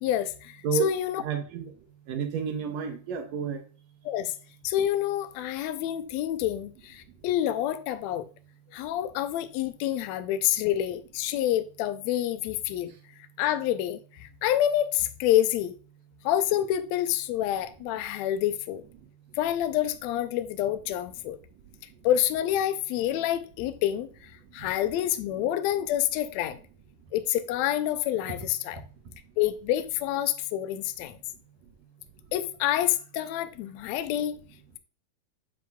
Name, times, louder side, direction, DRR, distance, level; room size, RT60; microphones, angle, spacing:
voice 1, 0.0-1.2 4.0-4.3 4.6-8.2 8.7-12.9 13.4-15.7 16.2-18.8 19.4-21.4 22.0-24.1 24.5-26.6 27.1-28.8 29.4-31.2 32.3-34.4, left 12 dB, 80° left, 1.6 m, -27 dB
voice 2, 1.2-1.8 2.1-3.6 24.6-24.7 28.8-28.9, right 7 dB, 70° right, 1.7 m, -30 dB
7.5 x 7.1 x 2.3 m
omnidirectional pair, 3.7 m